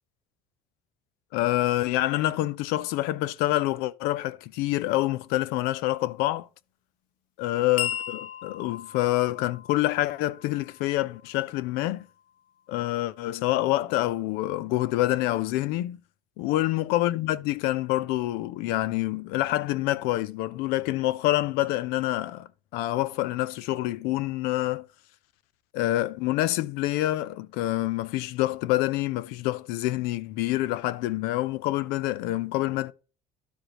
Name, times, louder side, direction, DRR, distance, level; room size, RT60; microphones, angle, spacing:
voice 1, 1.3-6.5 7.4-12.1 12.7-16.0 16.4-24.9 25.7-32.9, left 16 dB, 90° left, 0.6 m, -27 dB
sound 1, 7.8-12.4, left 11 dB, 65° left, 1.2 m, -38 dB
12.5 x 5.0 x 2.9 m
cardioid pair, 175°, 16 cm